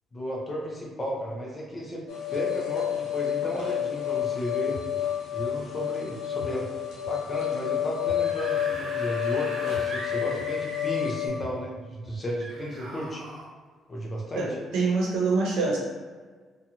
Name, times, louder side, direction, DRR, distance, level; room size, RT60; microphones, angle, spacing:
voice 1, 0.1-2.0 2.3-4.8 5.3-6.7 7.1-13.3 13.9-14.5, equal, 20° left, -3 dB, 0.5 m, -34 dB
sound 1, 2.1-11.3, left 10 dB, 90° left, 0.6 m, -29 dB
sound 2, 4.7-4.8 5.3-5.4 6.4-6.5 7.0-7.1 8.0-8.1 8.7-8.8 9.7-9.8 10.3-10.4 11.4-11.5 12.0-12.1, left 4 dB, 25° right, 1.4 m, -43 dB
Screaming / Screech, 8.2-11.4 12.4-13.5, right 1 dB, 50° right, 0.4 m, -40 dB
voice 2, 14.3-15.8, right 4 dB, 85° right, -2 dB, 0.8 m, -25 dB
2.8 x 2.3 x 2.7 m, 1.5 s
cardioid pair, 180°, 0 cm